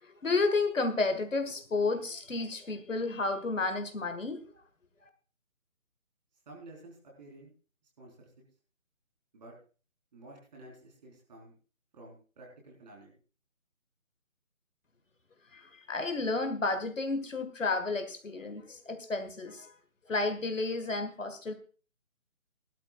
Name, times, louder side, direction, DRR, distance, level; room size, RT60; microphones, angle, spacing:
voice 1, 0.0-4.4 15.5-19.7 20.1-21.5, left 3 dB, 65° left, 8 dB, 1.9 m, -31 dB
voice 2, 6.5-7.5 8.0-8.3 9.3-9.5 10.1-11.5 11.9-13.1, right 2 dB, 30° right, -1 dB, 4.4 m, -51 dB
19.0 x 12.0 x 2.4 m, 0.36 s
figure-of-eight pair, 155°, 41 cm